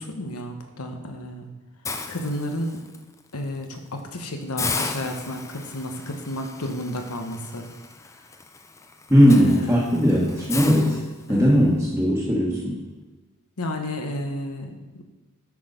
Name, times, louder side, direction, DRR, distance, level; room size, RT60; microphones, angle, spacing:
voice 1, 0.0-1.5 2.1-2.8 3.3-7.7 9.3-9.9 11.3-11.5 13.6-14.8, left 1 dB, 85° left, 4 dB, 1.1 m, -32 dB
Hiss, 1.8-3.0 3.4-3.6 4.0-4.1 4.6-11.6, left 4 dB, 15° left, 0.3 m, -35 dB
voice 2, 9.1-11.0 11.3-12.8, equal, 10° right, -7 dB, 1.3 m, -18 dB
8.1 x 6.1 x 5.2 m, 1.2 s
head